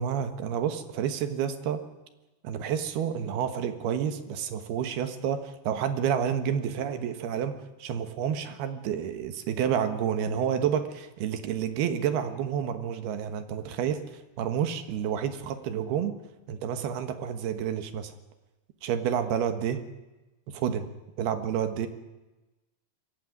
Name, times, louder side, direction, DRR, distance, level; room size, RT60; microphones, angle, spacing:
voice 1, 0.0-1.8 2.4-16.1 16.5-18.1 18.8-19.8 20.5-20.9 21.2-21.9, right 8 dB, 70° right, 9 dB, 3.2 m, -29 dB
23.0 x 16.0 x 9.5 m, 1.1 s
omnidirectional pair, 5.0 m